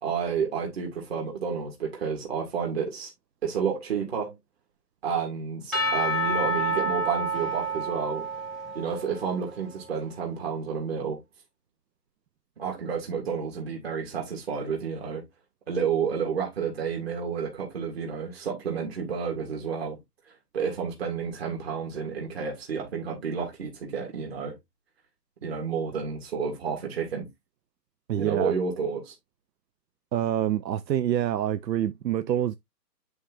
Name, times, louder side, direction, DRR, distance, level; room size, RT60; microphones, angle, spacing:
voice 1, 0.0-3.1 3.4-4.3 5.0-8.2 8.7-11.2 12.6-15.2 15.7-20.0 20.5-24.6 25.4-27.3 28.2-29.1, right 6 dB, 35° right, 2.4 m, -30 dB
Percussion / Church bell, 5.7-9.6, right 1 dB, ahead, 0.4 m, -29 dB
voice 2, 28.1-28.5 30.1-32.5, right 11 dB, 85° right, 0.6 m, -26 dB
10.5 x 3.7 x 2.5 m
hypercardioid pair, 165°, 49 cm